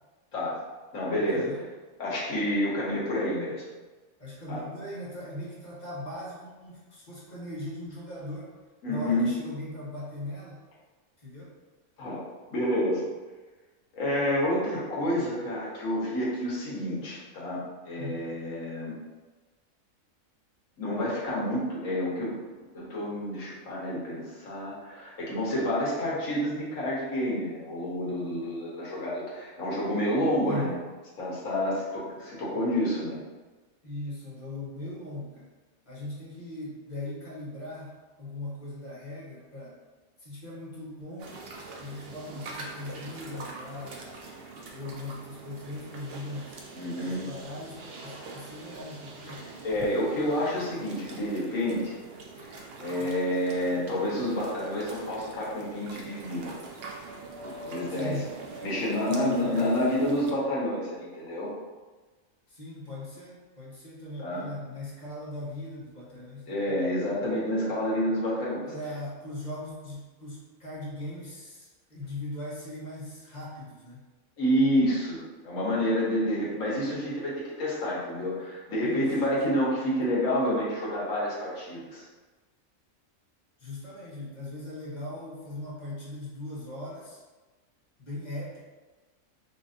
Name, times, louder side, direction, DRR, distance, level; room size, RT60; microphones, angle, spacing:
voice 1, 0.9-1.5 2.0-3.6 4.5-4.6 8.8-9.3 12.0-12.2 12.5-13.1 13.9-18.9 20.8-22.4 22.7-30.8 31.2-33.2 46.7-47.3 49.6-51.9 52.4-52.5 52.8-56.5 57.6-58.2 58.6-61.5 64.2-64.5 66.5-68.6 74.4-82.0, equal, 75° left, -6 dB, 1.5 m, -29 dB
voice 2, 4.2-8.5 8.9-10.6 11.2-11.5 18.0-18.2 30.4-30.7 33.8-35.5 35.9-37.9 38.2-39.8 40.2-41.5 41.8-44.1 44.7-46.6 47.1-49.7 53.0-53.2 57.9-58.3 59.1-59.7 62.5-66.7 68.7-74.0 78.8-79.1 83.6-87.2 88.0-88.6, left 1 dB, 35° left, -7 dB, 1.0 m, -39 dB
sound 1, 41.2-60.3, right 3 dB, 60° right, 0.7 m, -43 dB
5.4 x 2.4 x 2.6 m, 1.3 s
omnidirectional pair, 1.4 m